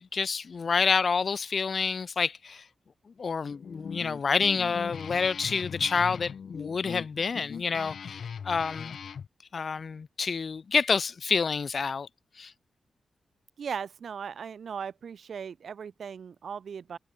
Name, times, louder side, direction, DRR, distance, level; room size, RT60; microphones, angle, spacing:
voice 1, 0.0-2.6 3.2-9.0 9.5-12.1 12.4-12.5, left 5 dB, 55° left, 0.5 m, -28 dB
Guitar, 3.5-9.3, left 7 dB, 70° left, 7.3 m, -40 dB
voice 2, 13.6-17.0, right 7 dB, 70° right, 3.7 m, -38 dB
cardioid pair, 70°, 0 cm